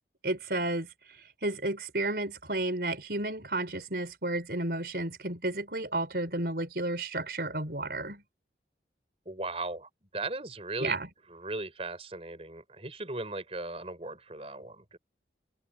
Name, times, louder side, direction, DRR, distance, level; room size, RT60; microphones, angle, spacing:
voice 1, 0.2-0.9 1.4-8.2 10.8-11.1, right 2 dB, 60° right, 5.0 m, -32 dB
voice 2, 9.2-11.0 11.3-15.0, right 2 dB, 35° right, 5.1 m, -37 dB
head